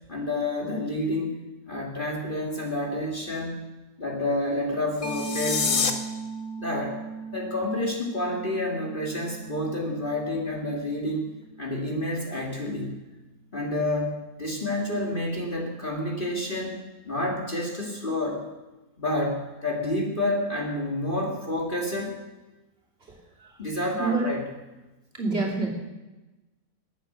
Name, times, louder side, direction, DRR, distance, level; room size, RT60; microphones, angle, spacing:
voice 1, 0.1-1.4 1.7-3.6 4.0-6.0 6.6-7.0 7.3-11.3 11.6-13.0 13.5-16.8 17.0-18.5 19.0-22.2 23.6-24.4, left 1 dB, 30° left, 0 dB, 2.3 m, -29 dB
sound 1, 4.9-5.9, left 5 dB, 55° left, 1.5 m, -26 dB
Mallet percussion, 5.0-12.3, right 3 dB, 85° left, 2.3 m, -39 dB
voice 2, 23.1-23.5 24.0-24.3 25.1-25.7, right 3 dB, 40° right, -2 dB, 3.4 m, -27 dB
20.5 x 9.0 x 6.7 m, 1.1 s
omnidirectional pair, 1.7 m